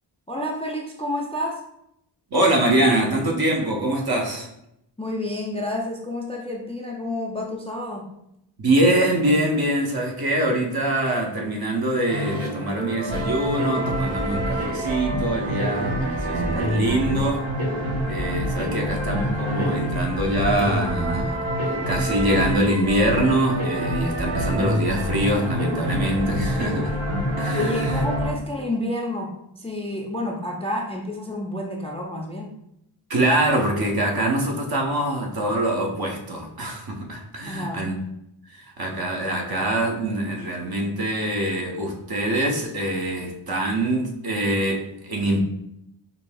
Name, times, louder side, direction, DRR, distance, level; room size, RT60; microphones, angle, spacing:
voice 1, 0.3-1.6 5.0-8.1 27.5-32.5 37.4-37.8, left 1 dB, 15° left, 0 dB, 0.3 m, -29 dB
voice 2, 2.3-4.5 8.6-17.4 18.1-26.9 27.4-28.0 33.1-38.0 38.5-45.4, right 1 dB, 50° right, 0 dB, 0.8 m, -24 dB
sound 1, 12.1-28.3, equal, 75° right, 1.1 m, -26 dB
5.2 x 2.7 x 2.2 m, 0.80 s
wide cardioid pair, 95°, 47 cm